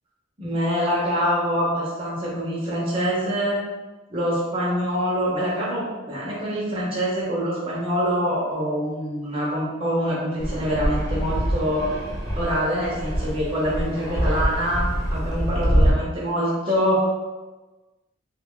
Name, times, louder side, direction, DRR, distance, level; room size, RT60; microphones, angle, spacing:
voice 1, 0.4-3.6 4.1-11.9 12.4-17.0, equal, 25° right, -7 dB, 0.6 m, -25 dB
Fixed-wing aircraft airplane, 10.4-15.9, equal, 20° left, 0.6 m, -25 dB
2.8 x 2.2 x 3.5 m, 1.2 s
head